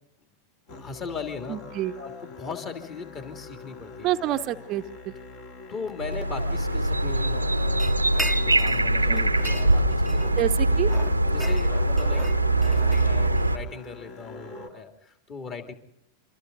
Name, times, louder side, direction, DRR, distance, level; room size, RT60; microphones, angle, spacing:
Musical instrument, 0.7-14.7, left 3 dB, 50° left, 3.1 m, -43 dB
voice 1, 0.7-1.6 2.0-4.1 5.7-8.0 8.5-10.5 11.3-12.2 12.5-15.7, left 5 dB, 30° left, 6 dB, 2.9 m, -38 dB
voice 2, 1.5-1.9 4.0-5.1 9.1-9.2 10.4-10.9, right 13 dB, 35° right, 8 dB, 0.8 m, -27 dB
sound 1, 6.0-13.6, right 1 dB, 85° right, 0.8 m, -23 dB
sound 2, 7.8-8.9 9.2-10.5 10.8-13.5, right 1 dB, 5° left, 0.9 m, -37 dB
26.5 x 25.0 x 4.0 m, 0.75 s
figure-of-eight pair, 90°, 0 cm